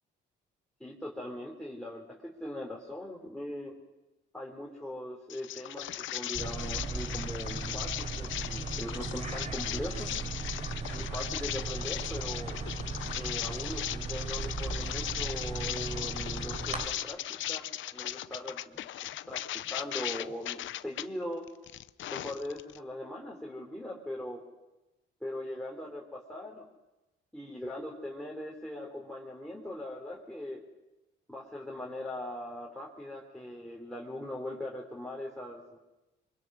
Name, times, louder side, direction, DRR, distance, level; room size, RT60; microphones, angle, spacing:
voice 1, 0.8-3.7 4.3-5.9 6.1-10.1 10.9-12.6 13.2-18.9 19.3-21.5 22.1-24.4 25.2-26.7 27.3-30.6 31.3-35.8, left 1 dB, 5° left, -3 dB, 4.0 m, -40 dB
sound 1, 5.3-21.1 21.5-22.8, left 13 dB, 75° left, 0.7 m, -38 dB
sound 2, 6.3-16.8, right 3 dB, 35° right, 4.3 m, -37 dB
24.5 x 23.5 x 6.3 m, 1.0 s
cardioid pair, 90°, 20 cm